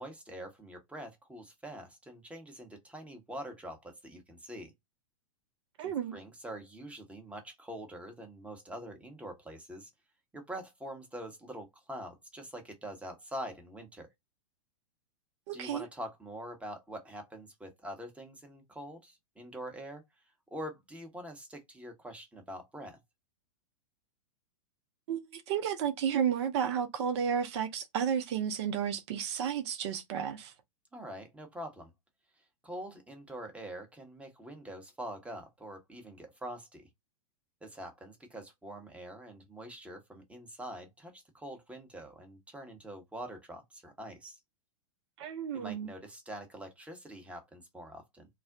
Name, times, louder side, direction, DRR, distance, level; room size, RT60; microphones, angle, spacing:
voice 1, 0.0-4.7 5.8-9.9 10.3-14.1 15.5-20.0 20.5-23.0 30.9-31.9 32.6-36.9 37.6-44.4 45.5-48.3, right 1 dB, 5° right, 0.8 m, -44 dB
voice 2, 5.8-6.1 15.5-15.9 25.1-30.5 45.2-45.9, right 8 dB, 50° right, 0.6 m, -32 dB
2.4 x 2.1 x 3.5 m
figure-of-eight pair, 105°, 18 cm